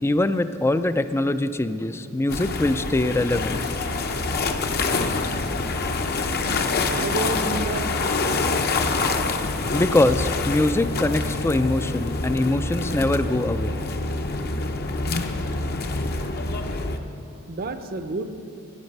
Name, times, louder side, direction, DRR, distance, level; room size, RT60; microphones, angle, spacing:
voice 1, 0.0-3.6 9.7-13.8, left 2 dB, 10° left, 12 dB, 0.3 m, -23 dB
sound 1, 2.3-17.0, left 3 dB, 45° left, 0.7 m, -26 dB
voice 2, 6.8-8.0 17.5-18.3, right 2 dB, 45° right, 9 dB, 0.6 m, -30 dB
13.5 x 9.8 x 5.3 m, 2.8 s
head